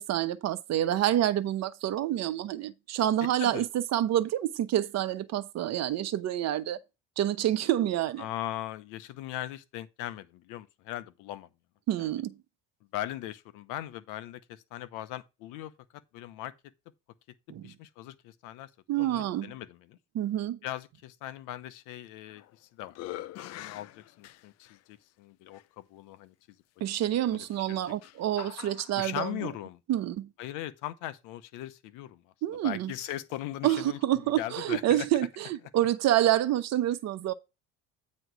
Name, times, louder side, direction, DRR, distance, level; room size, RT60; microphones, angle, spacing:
voice 1, 0.0-6.8 7.2-8.3 11.9-12.4 17.5-17.7 18.9-19.5 20.1-20.6 26.8-29.5 29.9-30.3 32.4-32.9 33.6-37.3, right 12 dB, 55° right, 0.9 m, -28 dB
voice 2, 8.2-11.5 12.0-12.1 12.9-15.7 16.1-16.5 17.6-18.7 19.0-20.0 20.6-23.0 23.3-26.3 27.0-27.9 29.0-29.8 30.4-32.2 32.6-35.1, left 13 dB, 70° left, 1.0 m, -39 dB
sound 1, 22.1-22.5 22.9-24.8 25.5-25.6 27.4-29.1, left 14 dB, 50° left, 0.5 m, -43 dB
9.1 x 3.2 x 6.3 m
supercardioid pair, 90°, 32 cm